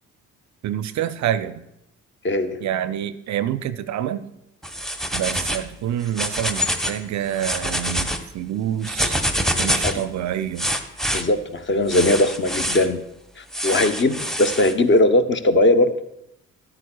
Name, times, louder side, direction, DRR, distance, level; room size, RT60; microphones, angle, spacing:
voice 1, 0.6-1.6 2.6-4.3 5.1-9.3 9.6-10.7, right 11 dB, 45° right, 13 dB, 0.5 m, -27 dB
voice 2, 2.2-2.6 9.8-10.0 11.1-13.0 13.4-15.9, left 1 dB, 30° left, 10 dB, 0.8 m, -19 dB
sound 1, 4.6-5.7 6.0-7.0 7.3-8.2 8.8-10.0 10.6-11.2 11.9-12.9 13.5-14.7, equal, ahead, 1.0 m, -25 dB
13.5 x 11.0 x 2.3 m, 0.83 s
figure-of-eight pair, 40°, 40 cm